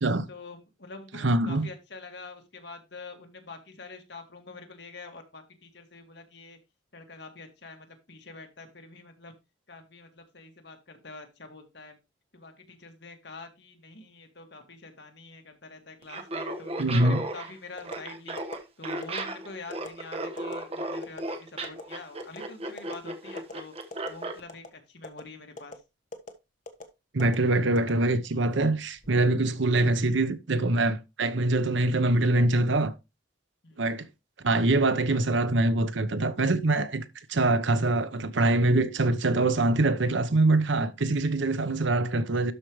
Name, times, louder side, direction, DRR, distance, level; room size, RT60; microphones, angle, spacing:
voice 1, 0.3-6.6 6.9-9.3 9.7-12.0 12.3-18.4 18.8-23.7 24.1-25.8 33.6-33.8, left 3 dB, 60° left, 1.9 m, -46 dB
voice 2, 1.1-1.7 16.8-17.2 27.1-32.9 33.8-34.0 34.4-42.5, right 2 dB, 70° right, 0.8 m, -24 dB
Laughter, 16.0-24.4, right 2 dB, 30° right, 1.2 m, -35 dB
sound 1, 17.8-18.0 18.4-18.6 19.0-19.3 19.7-19.9 20.4-20.6 21.0-21.2 21.6-21.8 22.2-22.4 22.8-23.0 23.4-23.5 23.9-24.2 24.5-24.7 25.0-25.2 25.6-25.8 26.1-26.3 26.7-26.8 27.2-27.4 27.8-28.4 28.8-29.1, left 2 dB, 40° left, 1.3 m, -40 dB
12.5 x 4.9 x 3.1 m
head